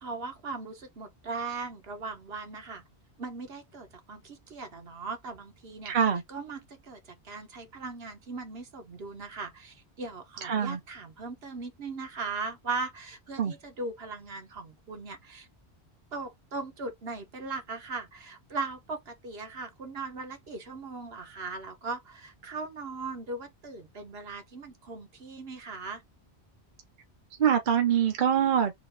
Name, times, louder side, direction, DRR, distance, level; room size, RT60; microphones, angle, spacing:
voice 1, 0.0-2.8 3.2-6.0 6.3-15.5 16.1-26.0, right 3 dB, 65° right, 1.3 m, -39 dB
voice 2, 5.9-6.2 10.4-10.8 13.4-13.5 27.4-28.7, right 8 dB, 50° right, 0.8 m, -24 dB
3.8 x 2.6 x 3.2 m
omnidirectional pair, 1.1 m